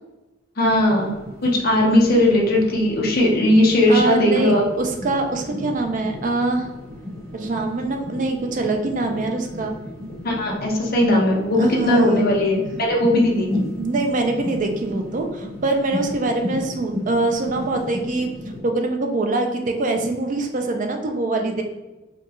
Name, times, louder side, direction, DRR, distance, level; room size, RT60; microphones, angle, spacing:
voice 1, 0.6-1.1 1.4-4.6 10.2-13.5, left 1 dB, 45° left, -1 dB, 0.8 m, -18 dB
sound 1, 0.7-18.6, left 1 dB, 15° left, 1.5 m, -34 dB
voice 2, 3.9-6.7 7.3-9.7 11.6-12.3 13.8-18.3 18.6-21.6, right 2 dB, 40° right, 4 dB, 0.4 m, -23 dB
4.5 x 2.3 x 3.0 m, 1.1 s
head